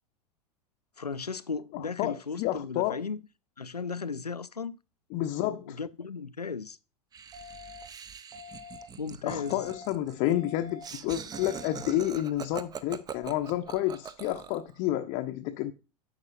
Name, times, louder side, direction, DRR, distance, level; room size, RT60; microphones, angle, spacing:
voice 1, 1.0-3.2 3.6-4.8 5.3-6.8 9.0-9.7, left 5 dB, 90° left, 0.5 m, -36 dB
voice 2, 1.7-3.0 5.1-5.8 9.2-15.7, left 14 dB, 40° left, 0.7 m, -30 dB
Laughter, 7.1-14.7, right 7 dB, 20° right, 0.7 m, -42 dB
sound 1, 7.3-7.8 8.3-8.8 9.3-9.8 10.3-10.8 11.3-11.8, left 6 dB, 85° right, 1.9 m, -46 dB
11.0 x 7.4 x 2.5 m
figure-of-eight pair, 85°, 20 cm